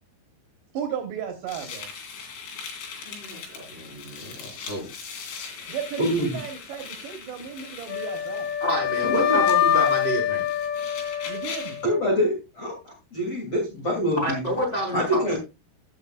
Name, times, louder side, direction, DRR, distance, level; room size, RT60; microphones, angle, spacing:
voice 1, 0.7-1.9 5.7-8.5 11.2-11.8, right 8 dB, 70° right, 4 dB, 3.1 m, -34 dB
sound 1, 1.5-11.9, left 5 dB, 60° left, 4.4 m, -40 dB
voice 2, 3.0-4.9 8.6-10.4 14.2-15.2, right 1 dB, 10° left, 0 dB, 4.0 m, -29 dB
voice 3, 6.0-6.4 9.0-9.4 11.8-12.7 13.1-14.4 14.9-15.4, equal, 35° left, -1 dB, 3.2 m, -25 dB
Wind instrument woodwind instrument, 7.9-12.0, left 9 dB, 80° left, 3.4 m, -25 dB
15.5 x 8.6 x 2.4 m, 0.27 s
omnidirectional pair, 5.8 m